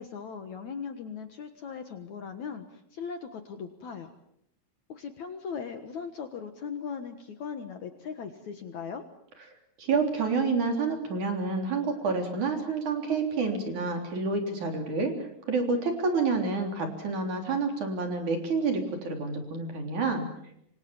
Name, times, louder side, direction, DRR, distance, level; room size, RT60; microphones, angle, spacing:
voice 1, 0.0-4.1 4.9-9.0, left 6 dB, 80° left, 7 dB, 1.6 m, -39 dB
voice 2, 9.8-15.1 15.5-20.3, right 4 dB, 40° right, 4 dB, 4.5 m, -28 dB
26.5 x 26.0 x 7.2 m, 0.76 s
omnidirectional pair, 5.7 m